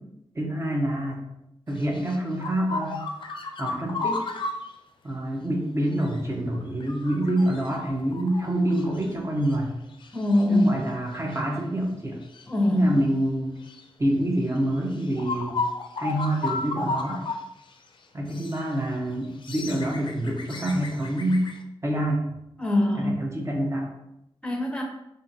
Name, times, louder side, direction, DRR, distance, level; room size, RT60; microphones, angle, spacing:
voice 1, 0.3-1.2 1.7-3.1 3.6-4.2 5.0-9.7 10.5-12.2 12.7-13.6 14.0-15.6 16.0-17.2 18.1-21.5 21.8-22.2 22.9-23.9, right 1 dB, 30° right, 0 dB, 0.8 m, -26 dB
sound 1, 1.8-4.7 6.0-6.2 6.5-9.1 9.4-9.6 10.0-10.7 11.3-11.4 12.2-12.4 13.6-13.8 14.6-14.7 14.9-17.4 17.7-17.8 18.3-18.7 19.2-21.6, left 3 dB, 55° left, 0.4 m, -34 dB
voice 2, 10.1-10.6 12.5-12.9 22.6-23.2 24.4-24.8, left 1 dB, 10° left, 1 dB, 0.7 m, -23 dB
2.7 x 2.6 x 3.9 m, 0.84 s
wide cardioid pair, 85°, 10 cm